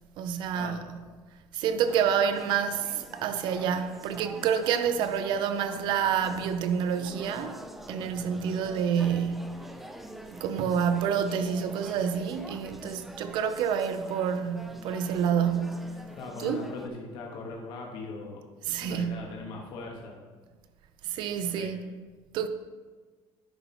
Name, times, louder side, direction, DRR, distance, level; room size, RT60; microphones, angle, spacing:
voice 1, 0.2-0.8 1.5-7.6 7.9-9.6 10.3-16.0 16.4-16.6 18.7-19.2 21.0-21.9 22.3-22.5, right 7 dB, 55° right, 0.6 m, -28 dB
sound 1, 1.9-16.9, equal, ahead, 0.4 m, -45 dB
voice 2, 16.1-18.4 18.8-20.2 21.4-21.7, left 3 dB, 55° left, 1.2 m, -40 dB
9.7 x 5.6 x 4.3 m
cardioid pair, 170°, 9 cm